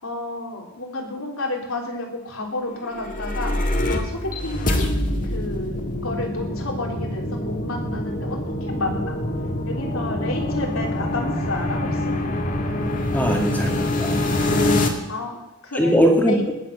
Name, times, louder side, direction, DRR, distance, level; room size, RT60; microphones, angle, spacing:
voice 1, 0.0-9.2 9.6-12.2 15.1-15.9 16.3-16.5, left 2 dB, 75° left, 1 dB, 3.5 m, -31 dB
sound 1, 2.8-14.9, left 1 dB, 40° left, 1.9 m, -25 dB
voice 2, 13.1-14.2 15.7-16.5, equal, 10° left, 2 dB, 2.2 m, -20 dB
20.0 x 7.6 x 6.9 m, 0.95 s
head